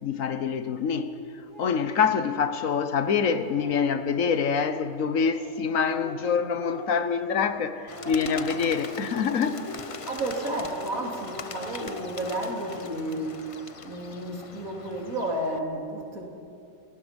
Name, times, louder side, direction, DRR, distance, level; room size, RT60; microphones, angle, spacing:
voice 1, 0.0-9.7, left 6 dB, 70° left, 1.4 m, -26 dB
Speech, 1.5-1.8 2.5-2.6 3.0-3.9 4.2-4.9 5.4-7.7 7.9-8.9 9.4-10.3 10.7-11.3 11.7-12.8, equal, 35° right, 5.4 m, -41 dB
Bird, 7.9-15.6, left 5 dB, 35° left, 0.5 m, -41 dB
voice 2, 10.1-13.5 13.8-16.2, right 1 dB, 90° right, 3.6 m, -32 dB
29.0 x 18.5 x 5.3 m
omnidirectional pair, 1.4 m